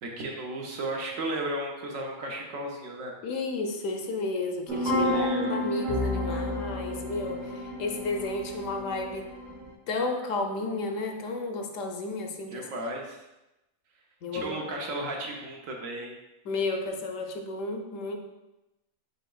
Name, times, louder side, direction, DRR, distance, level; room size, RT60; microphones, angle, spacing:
voice 1, 0.0-3.1 5.0-5.6 12.5-13.2 14.3-16.1, right 1 dB, 75° right, 0 dB, 1.2 m, -34 dB
voice 2, 3.2-9.3 9.9-12.6 14.2-14.7 16.4-18.2, left 3 dB, 75° left, 4 dB, 0.9 m, -32 dB
sound 1, 4.7-9.7, left 1 dB, 40° right, 0.9 m, -31 dB
5.5 x 3.9 x 2.3 m, 0.97 s
omnidirectional pair, 1.4 m